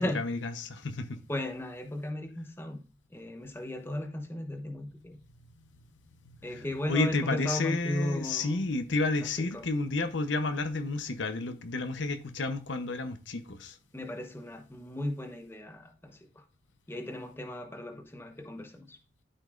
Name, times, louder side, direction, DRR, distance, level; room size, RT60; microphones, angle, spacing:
voice 1, 0.0-1.2 6.3-13.8, left 3 dB, 75° left, 0.8 m, -31 dB
voice 2, 1.3-2.8 3.1-5.2 6.4-8.6 9.4-9.7 13.9-16.4 16.9-19.0, left 1 dB, 10° left, 0.9 m, -36 dB
13.0 x 5.2 x 2.5 m
head